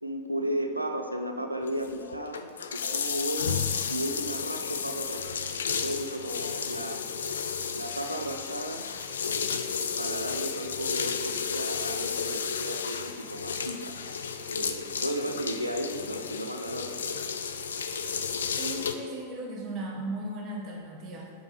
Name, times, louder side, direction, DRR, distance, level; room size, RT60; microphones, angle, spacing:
voice 1, 0.0-3.6 3.9-5.4 5.8-7.0 7.7-8.9 10.0-13.9 14.5-17.0, right 1 dB, 85° right, 5 dB, 0.4 m, -34 dB
sound 1, 1.7-18.9, left 6 dB, 65° left, 0.3 m, -32 dB
voice 2, 18.6-21.3, right 1 dB, 35° right, -2 dB, 1.1 m, -36 dB
5.1 x 3.7 x 5.0 m, 2.2 s
figure-of-eight pair, 90°, 0 cm